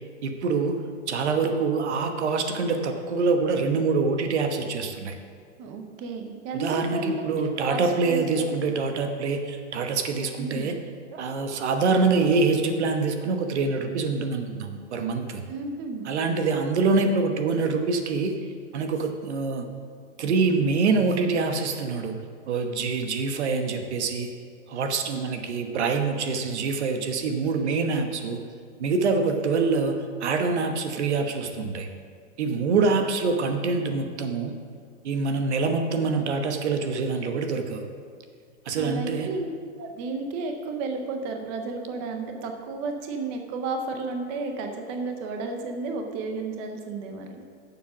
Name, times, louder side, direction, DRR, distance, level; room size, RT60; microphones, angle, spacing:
voice 1, 0.2-0.8 1.1-5.1 6.5-10.8 11.1-15.4 16.0-18.4 18.7-19.7 20.2-22.1 22.5-24.3 24.7-28.4 28.8-30.0 30.2-31.9 32.4-34.5 35.0-37.8 38.7-39.3, right 4 dB, 65° right, 6 dB, 1.2 m, -25 dB
voice 2, 5.6-8.5 10.4-10.7 15.5-16.1 38.8-39.5 39.8-47.4, right 3 dB, 20° right, 4 dB, 0.6 m, -32 dB
9.9 x 7.3 x 6.2 m, 2.1 s
supercardioid pair, 170°, 36 cm